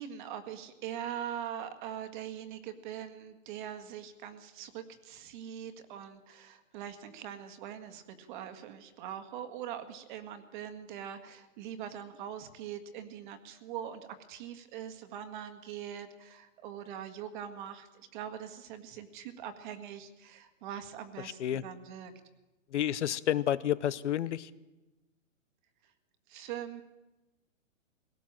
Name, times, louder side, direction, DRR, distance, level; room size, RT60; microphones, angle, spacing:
voice 1, 0.0-22.1 26.3-26.8, right 9 dB, 35° right, 9 dB, 1.8 m, -42 dB
voice 2, 21.2-21.6 22.7-24.5, left 11 dB, 60° left, 17 dB, 0.9 m, -30 dB
21.0 x 17.5 x 7.5 m, 1.1 s
hypercardioid pair, 150°, 40 cm